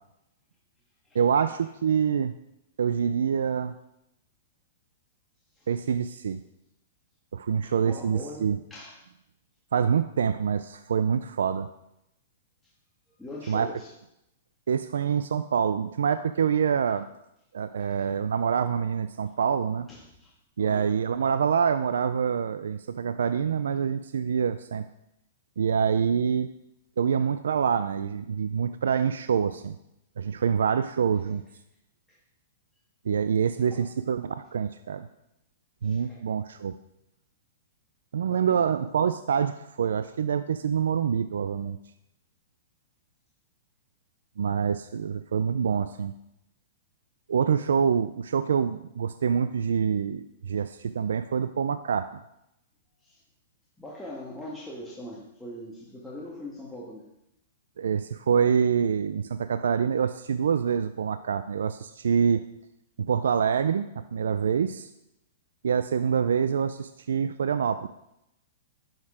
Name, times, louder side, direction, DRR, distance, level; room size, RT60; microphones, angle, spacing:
voice 1, 1.1-2.3 2.8-3.7 5.7-6.4 7.3-8.6 9.7-11.7 13.5-13.7 14.7-17.1 17.5-19.9 20.6-24.9 25.6-26.5 27.0-29.8 30.2-31.4 33.1-35.1 35.8-36.7 38.1-41.8 44.4-46.1 47.3-52.1 57.8-62.4 63.1-64.9 65.6-67.9, right 7 dB, 85° right, 11 dB, 0.4 m, -26 dB
voice 2, 7.6-9.0 13.2-13.9 17.7-18.2 19.9-20.3 20.6-20.9 29.0-29.1 32.1-32.2 33.7-33.9 35.8-36.2 38.2-38.7 53.0-53.2 53.8-57.1, left 1 dB, 5° left, -5 dB, 1.6 m, -42 dB
10.5 x 6.5 x 4.9 m, 0.84 s
hypercardioid pair, 140°, 0 cm